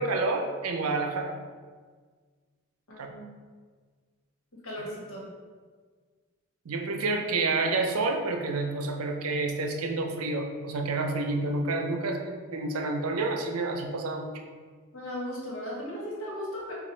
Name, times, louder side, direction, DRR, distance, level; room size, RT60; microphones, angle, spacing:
voice 1, 0.0-1.3 3.0-3.1 6.7-14.4, right 3 dB, 90° right, 4 dB, 0.5 m, -29 dB
voice 2, 2.9-3.3 4.6-5.3 14.9-16.7, equal, 85° left, -5 dB, 1.4 m, -36 dB
5.8 x 2.4 x 3.2 m, 1.5 s
head